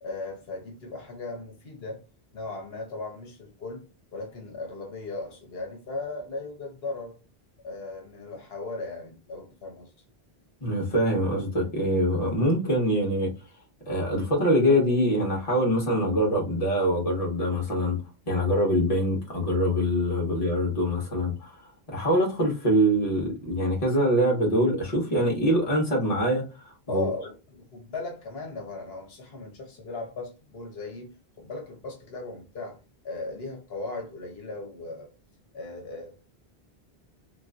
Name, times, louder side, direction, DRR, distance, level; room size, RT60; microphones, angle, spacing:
voice 1, 0.0-2.0 2.3-3.8 4.1-7.1 7.6-9.9 26.9-31.1 31.4-32.8 33.0-35.1 35.5-36.2, left 3 dB, 75° left, 1.1 m, -37 dB
voice 2, 10.6-13.3 13.9-18.0 18.3-27.1, equal, 35° left, 1.2 m, -24 dB
3.3 x 3.0 x 2.4 m
omnidirectional pair, 1.1 m